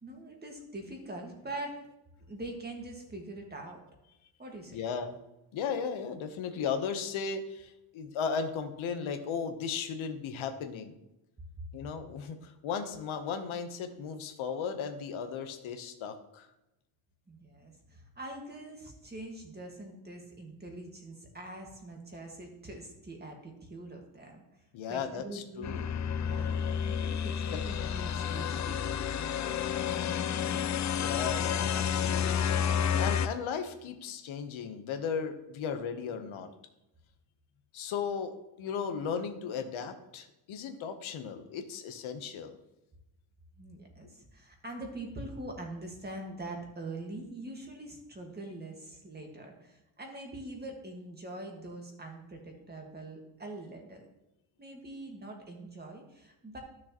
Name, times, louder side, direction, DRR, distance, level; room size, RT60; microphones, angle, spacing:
voice 1, 0.0-1.8 2.3-3.8 4.4-4.8 17.3-24.4 24.9-25.9 26.2-30.6 43.5-54.1 54.6-56.6, right 2 dB, 20° right, 2 dB, 1.7 m, -44 dB
voice 2, 4.7-5.2 5.5-10.9 11.7-16.5 24.7-25.8 27.5-27.6 30.9-32.5 33.0-36.5 37.7-42.6, left 6 dB, 80° left, 7 dB, 1.0 m, -36 dB
sound 1, 25.6-33.3, left 8 dB, 40° left, 0.4 m, -30 dB
12.5 x 6.4 x 3.0 m, 0.92 s
cardioid pair, 120°, 48 cm